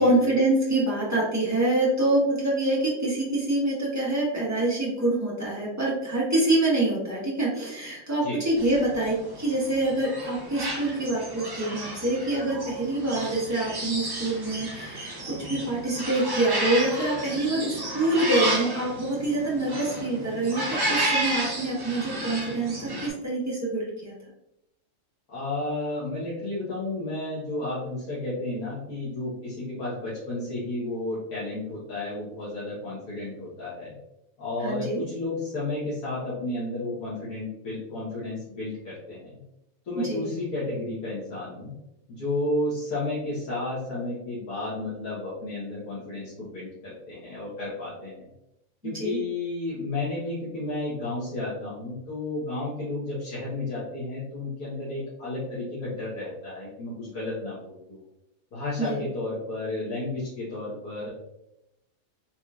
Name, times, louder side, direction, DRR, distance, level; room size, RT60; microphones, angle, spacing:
voice 1, 0.0-15.2 15.5-24.1 34.6-35.0 39.9-40.2 48.8-49.2 58.8-59.0, right 2 dB, 10° right, -7 dB, 1.2 m, -26 dB
sound 1, 8.6-23.1, right 1 dB, 30° right, 0.4 m, -32 dB
voice 2, 25.3-33.9 34.4-39.3 39.9-41.7 42.1-48.2 48.8-58.0 58.5-61.1, left 2 dB, 85° left, -9 dB, 1.6 m, -32 dB
4.3 x 2.9 x 2.3 m, 0.86 s
omnidirectional pair, 1.5 m